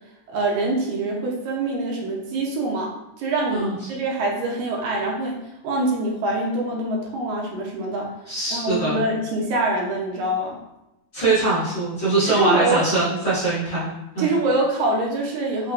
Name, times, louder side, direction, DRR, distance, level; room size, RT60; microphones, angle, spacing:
voice 1, 0.3-2.9 3.2-8.1 8.5-10.6 12.4-12.8 14.2-15.7, right 2 dB, 75° right, -2 dB, 2.0 m, -24 dB
voice 2, 8.3-9.0 11.1-14.3, right 3 dB, 45° left, -12 dB, 1.7 m, -22 dB
5.8 x 2.7 x 2.4 m, 0.90 s
omnidirectional pair, 3.6 m